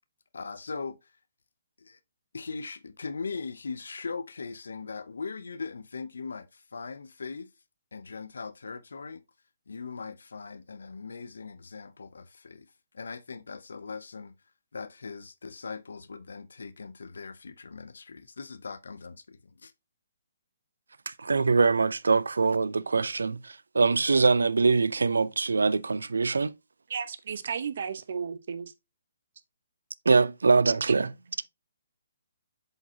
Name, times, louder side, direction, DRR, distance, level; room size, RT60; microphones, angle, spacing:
voice 1, 0.3-1.0 1.8-2.0 2.3-7.5 7.9-9.2 9.7-12.7 12.9-14.3 14.7-19.7, left 4 dB, 80° left, 0.5 m, -40 dB
voice 2, 21.1-26.5 30.1-31.1, right 4 dB, 85° right, 0.4 m, -23 dB
voice 3, 26.9-28.7, right 6 dB, 60° right, 0.8 m, -34 dB
7.7 x 4.9 x 2.8 m
hypercardioid pair, 145°, 0 cm